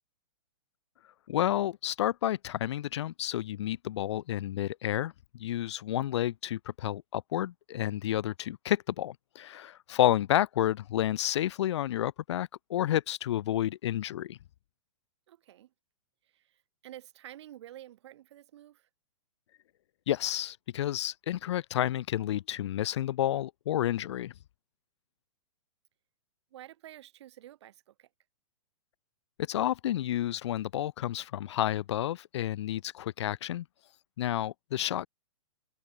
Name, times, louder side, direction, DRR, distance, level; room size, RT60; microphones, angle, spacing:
voice 1, 1.3-14.4 20.1-24.3 29.4-33.6 34.2-35.1, left 12 dB, 55° left, 0.7 m, -30 dB
voice 2, 15.3-15.7 16.3-18.9 26.5-28.1, right 13 dB, 50° right, 3.9 m, -50 dB
hypercardioid pair, 160°, 18 cm